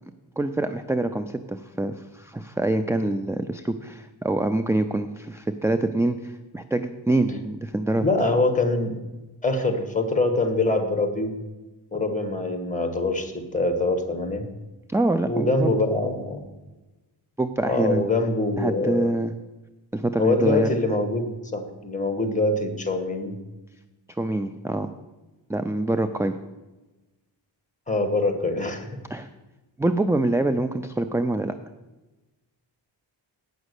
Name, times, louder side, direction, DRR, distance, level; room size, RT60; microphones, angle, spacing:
voice 1, 0.4-8.1 14.9-15.7 17.4-18.1 18.6-19.3 19.9-20.8 24.2-24.9 25.5-26.4 29.1-29.3 29.8-31.6, right 2 dB, 5° right, 9 dB, 0.3 m, -25 dB
voice 2, 8.0-9.0 9.4-11.4 11.9-14.5 15.2-16.5 17.6-19.1 20.2-23.4 27.9-28.9, left 2 dB, 15° left, 6 dB, 1.6 m, -24 dB
9.1 x 6.1 x 8.2 m, 1.1 s
wide cardioid pair, 100°, 47 cm